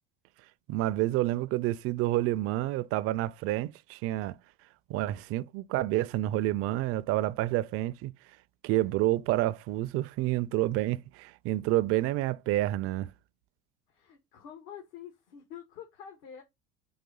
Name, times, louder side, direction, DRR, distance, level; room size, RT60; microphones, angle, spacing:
voice 1, 0.7-4.3 4.9-8.1 8.6-13.1, right 16 dB, 50° right, 0.4 m, -29 dB
voice 2, 13.9-16.4, left 8 dB, 70° left, 1.8 m, -47 dB
4.8 x 3.7 x 5.4 m
supercardioid pair, 115°, 29 cm